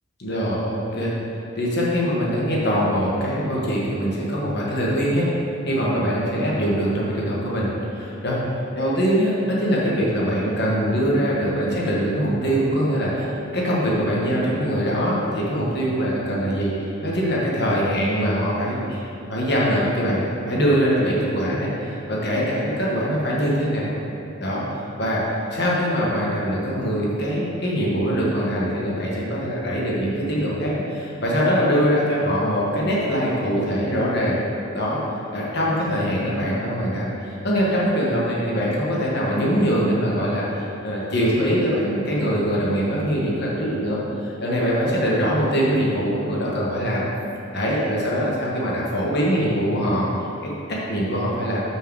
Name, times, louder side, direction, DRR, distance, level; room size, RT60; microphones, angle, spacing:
voice 1, 0.2-1.1 1.5-5.3 5.6-8.4 8.7-23.9 24.4-34.4 34.7-35.0 35.3-47.0 47.5-50.1 50.4-51.6, equal, 50° left, -5 dB, 1.4 m, -23 dB
6.4 x 4.7 x 6.2 m, 2.8 s
head